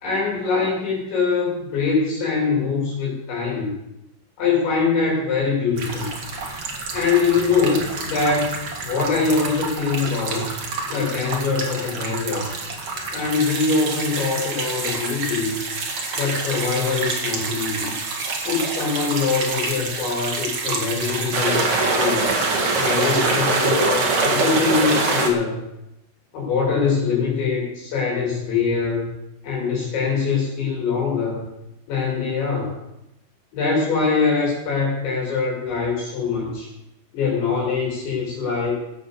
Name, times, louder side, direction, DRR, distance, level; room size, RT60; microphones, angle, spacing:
voice 1, 0.0-3.7 4.4-6.1 6.9-10.6 10.9-12.5 13.1-15.6 16.2-18.0 18.5-22.3 22.8-25.6 26.3-29.1 29.4-31.5 31.9-32.8 33.5-36.7 37.1-38.7, left 5 dB, 65° left, -3 dB, 5.4 m, -23 dB
sound 1, 5.8-25.3, right 3 dB, 65° right, 1.4 m, -25 dB
17.0 x 7.8 x 6.6 m, 0.87 s
omnidirectional pair, 5.9 m